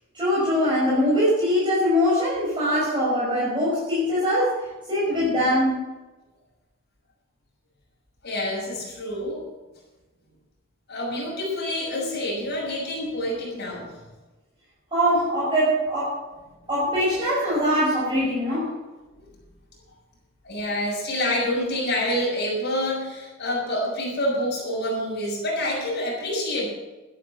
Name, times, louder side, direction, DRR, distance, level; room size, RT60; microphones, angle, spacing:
voice 1, 0.1-4.6 4.9-5.8 12.0-12.2 14.9-16.2 16.7-18.7, equal, 25° right, -9 dB, 6.0 m, -22 dB
voice 2, 8.2-9.4 10.9-13.9 20.4-26.7, left 1 dB, 55° left, -4 dB, 6.3 m, -27 dB
13.5 x 10.5 x 7.3 m, 1.1 s
head